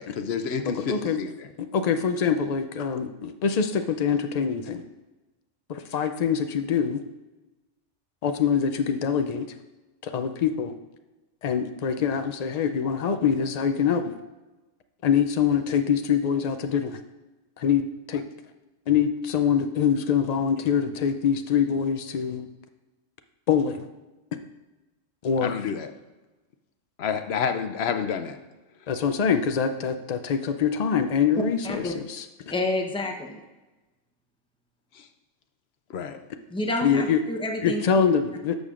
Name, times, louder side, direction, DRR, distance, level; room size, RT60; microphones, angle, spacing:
voice 1, 0.0-1.3 25.4-25.9 27.0-28.4 34.9-35.1 35.9-36.2, left 6 dB, 65° left, 8 dB, 0.8 m, -29 dB
voice 2, 0.9-1.2 1.6-4.8 5.7-7.0 8.2-9.5 10.0-10.7 11.4-14.1 15.0-17.0 17.6-17.8 18.1-18.2 18.9-22.5 23.5-23.9 25.2-25.5 28.9-32.3 36.8-37.2 37.6-38.6, left 7 dB, 85° left, 8 dB, 0.3 m, -24 dB
voice 3, 32.5-33.4 36.5-38.1, left 2 dB, 5° left, 3 dB, 0.6 m, -29 dB
11.5 x 6.7 x 2.4 m, 1.1 s
omnidirectional pair, 1.3 m